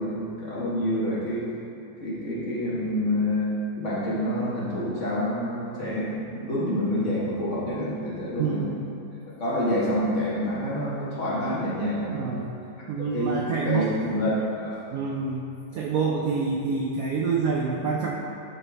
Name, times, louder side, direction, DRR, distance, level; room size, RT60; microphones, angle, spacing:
voice 1, 0.0-1.5 2.0-8.7 9.4-12.3 13.0-14.8, equal, 40° left, -8 dB, 1.6 m, -27 dB
voice 2, 8.4-8.8 12.1-12.5 12.9-13.8 14.9-15.5 15.7-18.2, right 5 dB, 85° right, -2 dB, 0.7 m, -27 dB
10.5 x 4.2 x 3.4 m, 2.7 s
omnidirectional pair, 2.1 m